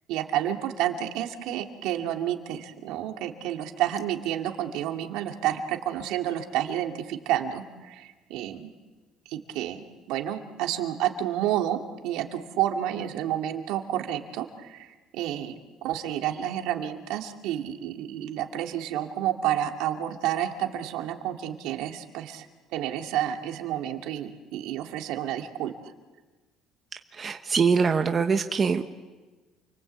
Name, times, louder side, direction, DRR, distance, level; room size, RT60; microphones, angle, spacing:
voice 1, 0.1-8.7 9.3-14.9 15.1-15.5 15.8-22.5 22.7-25.7, right 11 dB, 70° right, 4 dB, 2.4 m, -30 dB
voice 2, 27.2-29.0, right 5 dB, 20° right, 6 dB, 0.9 m, -23 dB
29.0 x 23.0 x 8.3 m, 1.3 s
cardioid pair, 175°, 0 cm